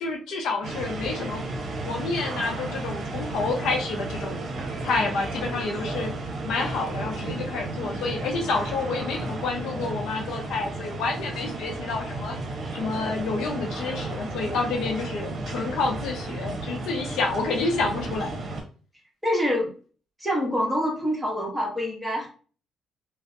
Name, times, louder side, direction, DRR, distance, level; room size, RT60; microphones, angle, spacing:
voice 1, 0.0-1.5 1.9-4.5 4.8-6.1 6.4-12.4 12.7-18.4, left 3 dB, 80° left, 2 dB, 0.5 m, -29 dB
sound 1, 0.6-18.6, right 2 dB, 55° right, 0.7 m, -33 dB
voice 2, 19.2-19.7 20.2-22.3, equal, 5° right, -2 dB, 1.0 m, -26 dB
2.4 x 2.0 x 2.6 m, 0.40 s
cardioid pair, 90°, 0 cm